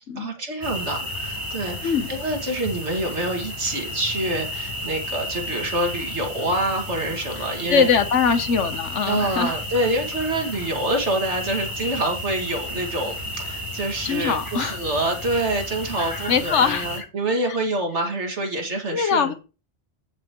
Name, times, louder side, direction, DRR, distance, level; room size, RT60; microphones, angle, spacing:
voice 1, 0.2-7.9 9.1-19.3, right 1 dB, 70° right, 2.5 m, -26 dB
sound 1, 0.6-17.0, left 1 dB, 15° left, 3.3 m, -33 dB
voice 2, 7.4-9.6 14.0-14.8 16.3-17.1 18.9-19.3, left 6 dB, 80° left, 1.3 m, -22 dB
15.5 x 5.9 x 3.0 m
omnidirectional pair, 1.2 m